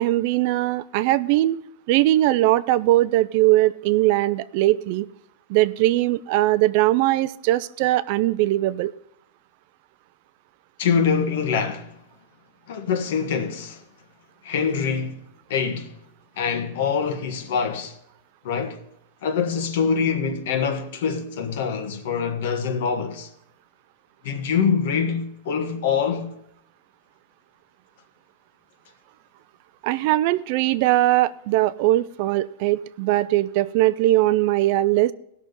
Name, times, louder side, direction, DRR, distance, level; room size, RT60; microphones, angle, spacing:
voice 1, 0.0-1.6 1.9-5.1 5.5-8.9 29.8-35.1, right 16 dB, 45° right, 0.4 m, -20 dB
voice 2, 10.8-12.0 12.7-13.8 14.4-15.2 15.5-16.0 16.4-18.0 18.4-18.8 19.2-23.3 24.2-26.3, left 6 dB, 60° left, 1.4 m, -24 dB
16.5 x 6.2 x 5.3 m
supercardioid pair, 170°, 0 cm